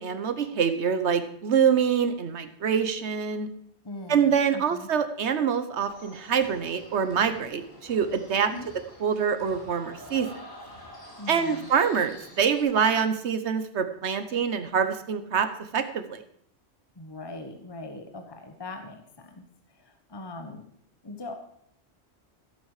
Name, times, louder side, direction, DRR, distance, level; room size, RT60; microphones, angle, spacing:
voice 1, 0.0-3.5 4.1-8.5 9.0-10.3 11.3-15.5 15.7-16.2, right 7 dB, 80° right, 9 dB, 1.2 m, -25 dB
voice 2, 3.8-4.9 8.4-8.7 11.2-11.7 17.0-19.4 19.8-20.6 21.0-21.3, left 2 dB, 25° left, 5 dB, 1.1 m, -40 dB
sound 1, 5.8-12.6, left 1 dB, 60° left, 3.1 m, -47 dB
15.0 x 8.4 x 4.9 m, 0.67 s
omnidirectional pair, 1.1 m